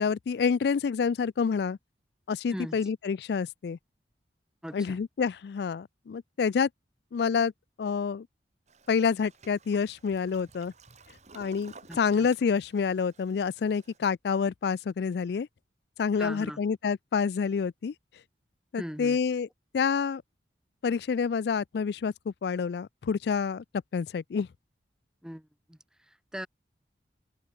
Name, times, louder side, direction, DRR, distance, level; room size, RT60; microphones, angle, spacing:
voice 1, 0.0-1.8 2.3-3.8 4.7-6.7 7.1-7.5 7.8-8.3 8.9-10.7 11.3-15.5 16.0-17.9 18.7-19.5 19.7-20.2 20.8-23.6 23.9-24.5, left 6 dB, 60° left, 0.3 m, -28 dB
voice 2, 4.6-5.0 11.9-12.3 16.2-16.6 18.8-19.2 25.2-25.8 26.1-26.5, equal, 5° right, 0.9 m, -40 dB
Toilet flush, 8.7-14.0, right 4 dB, 40° right, 3.1 m, -55 dB
head